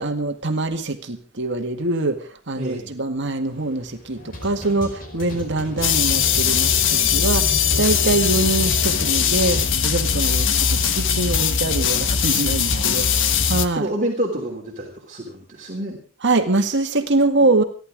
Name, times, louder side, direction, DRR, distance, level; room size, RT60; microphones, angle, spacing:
voice 1, 0.0-2.2 2.5-13.1 13.5-13.9 16.2-17.6, right 2 dB, 55° right, 5 dB, 2.0 m, -23 dB
voice 2, 2.6-2.9 5.3-6.0 12.7-16.0 17.4-17.5, right 1 dB, 35° right, -2 dB, 3.0 m, -30 dB
sound 1, 3.5-9.7, equal, 40° left, 4.8 m, -35 dB
sound 2, 5.8-13.7, left 7 dB, 60° left, 1.3 m, -20 dB
28.5 x 11.5 x 3.7 m, 0.39 s
head